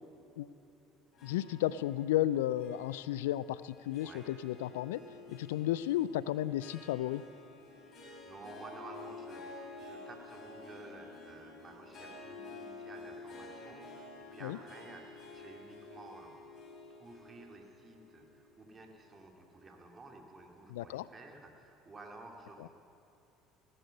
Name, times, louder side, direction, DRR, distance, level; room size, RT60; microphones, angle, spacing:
Harp, 1.1-19.6, left 3 dB, 45° left, 4.4 m, -51 dB
voice 1, 1.2-5.0 5.3-7.2 14.4-14.6 20.7-21.1 22.6-22.7, left 13 dB, 75° left, 18 dB, 0.3 m, -33 dB
voice 2, 8.0-16.3 17.0-22.7, right 2 dB, 30° right, 2 dB, 2.7 m, -53 dB
18.0 x 11.0 x 6.6 m, 2.9 s
hypercardioid pair, 65°, 0 cm